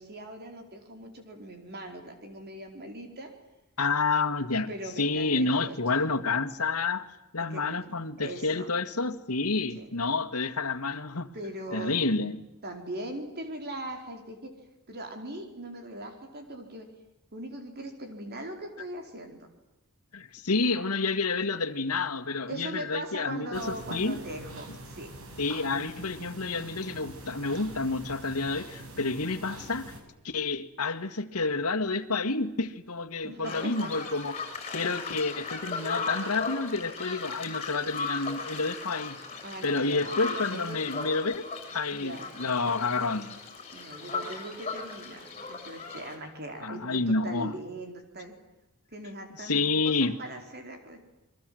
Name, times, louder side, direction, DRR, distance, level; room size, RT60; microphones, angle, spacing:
voice 1, 0.0-3.3 4.7-6.0 7.5-7.8 8.2-8.7 9.7-9.9 11.3-12.3 12.6-14.5 14.9-16.9 17.3-19.5 22.5-25.1 33.2-34.1 39.4-41.0 41.9-42.3 43.7-48.3 48.9-51.1, right 1 dB, 45° right, 4.6 m, -40 dB
voice 2, 3.8-4.7 5.0-7.1 7.3-11.3 11.7-12.4 20.1-24.2 25.4-29.9 30.2-34.4 34.7-39.2 39.6-41.5 41.7-43.4 46.6-47.5 49.4-50.2, left 3 dB, 85° left, 1.9 m, -29 dB
sound 1, 23.5-30.0, right 1 dB, 70° right, 5.8 m, -45 dB
sound 2, 33.4-46.2, left 4 dB, 30° left, 6.1 m, -37 dB
29.0 x 23.0 x 7.8 m
head